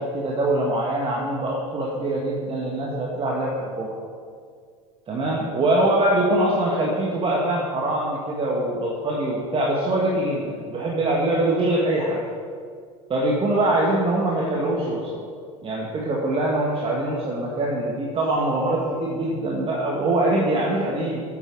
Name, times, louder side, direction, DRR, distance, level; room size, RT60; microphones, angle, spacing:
voice 1, 0.0-4.0 5.1-12.2 13.1-15.2 15.6-21.2, right 1 dB, 30° right, -2 dB, 1.8 m, -23 dB
9.2 x 7.9 x 6.4 m, 2.1 s
hypercardioid pair, 80°, 18 cm